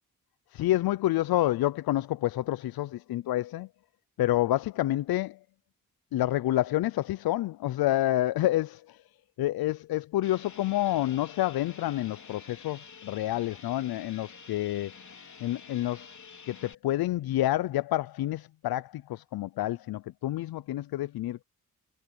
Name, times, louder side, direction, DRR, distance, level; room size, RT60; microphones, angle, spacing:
voice 1, 0.5-3.7 4.2-5.4 6.1-9.0 9.4-14.9 15.4-16.1 16.5-21.4, left 14 dB, 90° left, 0.5 m, -28 dB
sound 1, 10.2-16.7, left 6 dB, 55° left, 3.7 m, -49 dB
cardioid pair, 65°, 35 cm